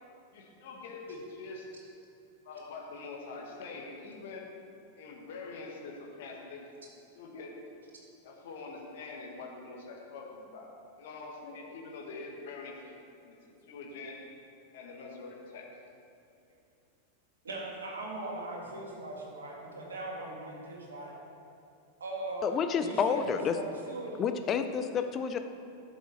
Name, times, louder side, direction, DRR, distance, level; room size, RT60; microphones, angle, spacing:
voice 1, 0.3-1.7 2.4-4.5 5.0-6.7 7.1-7.6 8.2-10.7 11.0-13.4 13.6-14.2 14.7-15.7, left 3 dB, 55° left, 0 dB, 1.5 m, -44 dB
voice 2, 17.4-21.1 22.0-22.5 22.8-24.2, right 2 dB, 70° right, -2 dB, 1.9 m, -39 dB
voice 3, 22.4-23.6 24.2-25.4, left 7 dB, 30° left, 8 dB, 0.6 m, -29 dB
11.0 x 7.3 x 4.2 m, 2.5 s
figure-of-eight pair, 90°, 0 cm